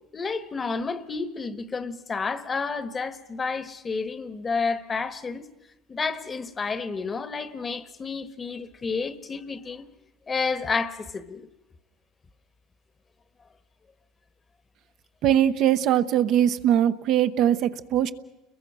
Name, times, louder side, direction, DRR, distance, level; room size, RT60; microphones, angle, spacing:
voice 1, 0.1-5.5 5.9-9.9 10.3-11.5, left 4 dB, 25° left, 1.2 m, -30 dB
voice 2, 15.2-18.1, right 10 dB, 55° right, 0.9 m, -21 dB
30.0 x 22.0 x 6.2 m
supercardioid pair, 115°, 0 cm